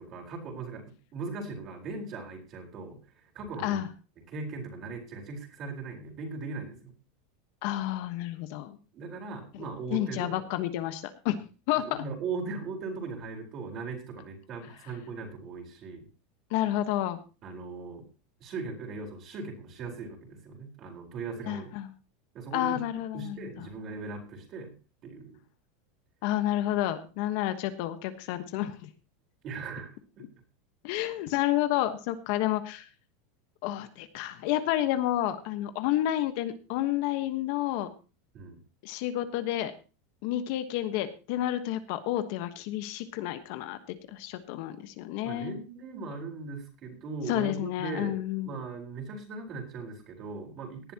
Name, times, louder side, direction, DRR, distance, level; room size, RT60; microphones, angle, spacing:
voice 1, 0.0-3.8 4.3-6.9 8.9-10.4 11.8-16.0 17.4-18.1 18.4-21.8 22.3-22.8 23.1-24.7 25.0-25.4 29.4-30.2 38.3-38.6 45.2-50.9, right 4 dB, 30° right, 2 dB, 4.4 m, -39 dB
voice 2, 7.6-8.8 9.5-9.6 9.9-11.4 11.7-12.0 16.5-17.2 21.5-21.9 22.5-23.6 26.2-28.9 30.8-32.9 33.6-37.9 38.8-39.7 40.2-43.8 44.1-45.6 47.3-48.6, left 13 dB, 50° left, 10 dB, 1.2 m, -30 dB
18.0 x 11.0 x 2.9 m, 0.33 s
supercardioid pair, 165°, 0 cm